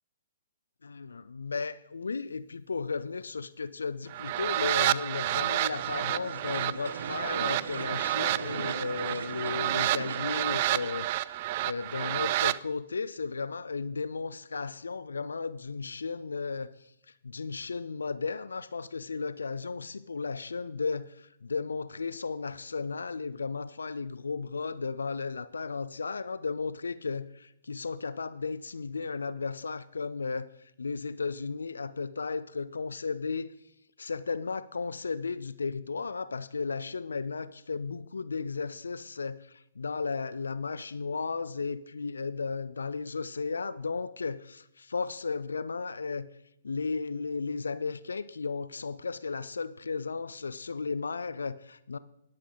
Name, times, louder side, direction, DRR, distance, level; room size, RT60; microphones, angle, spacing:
voice 1, 0.8-11.4 11.6-16.9 17.2-30.5 30.8-33.5 34.0-46.3 46.6-52.0, left 4 dB, 85° left, 0.4 m, -34 dB
sound 1, 4.1-12.6, right 15 dB, 45° right, 0.4 m, -30 dB
sound 2, 5.7-10.9, right 5 dB, 70° right, 1.4 m, -40 dB
11.5 x 11.0 x 3.9 m
hypercardioid pair, 130°, 0 cm